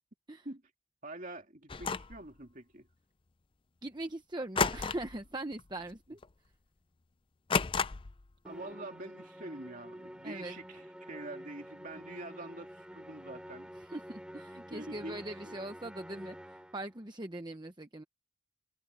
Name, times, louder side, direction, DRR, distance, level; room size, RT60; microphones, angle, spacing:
voice 1, 1.0-2.9 8.4-13.7 14.7-15.6, right 2 dB, 40° right, 2.8 m, -45 dB
sound 1, 1.7-2.2 4.6-5.2 5.5-5.8 6.2-6.3 7.5-8.2, left 5 dB, 25° left, 0.4 m, -31 dB
voice 2, 3.8-6.2 10.2-10.6 13.8-18.0, right 1 dB, 20° right, 0.9 m, -41 dB
Musical instrument, 8.4-17.0, equal, 5° right, 6.1 m, -49 dB
head